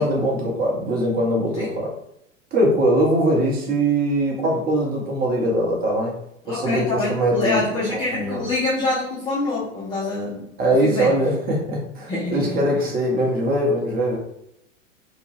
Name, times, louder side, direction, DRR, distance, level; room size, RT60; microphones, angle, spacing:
voice 1, 0.0-1.9 2.5-6.1 6.5-8.4 10.6-14.2, right 1 dB, 25° right, -2 dB, 0.8 m, -21 dB
voice 2, 6.5-10.5 10.8-11.1 12.1-12.6, left 2 dB, 10° left, -5 dB, 0.4 m, -25 dB
2.8 x 2.2 x 3.1 m, 0.79 s
figure-of-eight pair, 95°, 39 cm